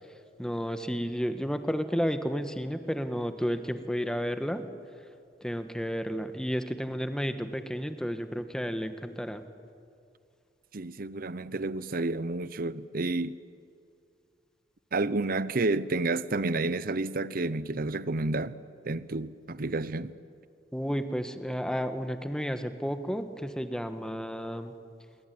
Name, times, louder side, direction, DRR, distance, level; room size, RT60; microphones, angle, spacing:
voice 1, 0.4-4.6 5.4-9.4 20.7-24.7, equal, 5° left, 1.4 m, -32 dB
voice 2, 10.7-13.4 14.9-18.6 18.8-20.1, right 2 dB, 50° right, 0.8 m, -30 dB
27.0 x 23.5 x 9.5 m
head